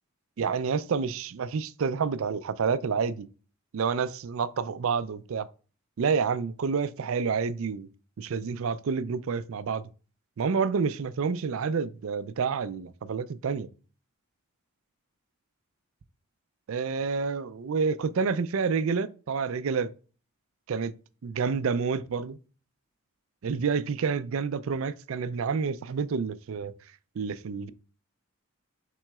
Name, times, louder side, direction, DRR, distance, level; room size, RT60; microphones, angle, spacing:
voice 1, 0.4-3.3 3.7-5.5 6.0-7.9 8.2-9.9 10.4-13.7 16.7-19.9 20.7-21.0 21.2-22.4 23.4-26.7 27.2-27.7, right 5 dB, 65° right, 0.4 m, -29 dB
6.0 x 3.8 x 2.3 m
head